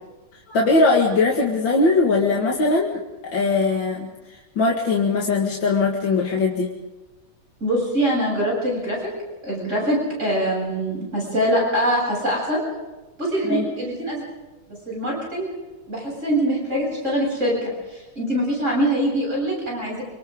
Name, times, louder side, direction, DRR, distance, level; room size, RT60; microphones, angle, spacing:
voice 1, 0.5-6.7 13.4-13.7, left 3 dB, 65° left, -1 dB, 2.7 m, -20 dB
voice 2, 7.6-9.1 9.4-12.6 13.2-14.2 14.9-15.5 15.9-20.0, right 1 dB, 35° right, -3 dB, 8.2 m, -23 dB
27.5 x 25.5 x 3.8 m, 1.1 s
omnidirectional pair, 2.3 m